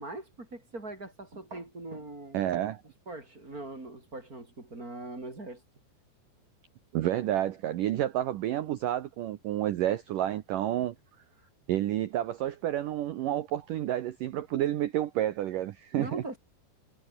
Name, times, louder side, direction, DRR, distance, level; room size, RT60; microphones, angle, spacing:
voice 1, 0.0-2.4 3.1-5.6 15.9-16.4, right 2 dB, 20° right, 5.2 m, -41 dB
voice 2, 2.3-2.8 6.9-11.0 11.7-16.2, right 12 dB, 90° right, 1.8 m, -30 dB
omnidirectional pair, 5.4 m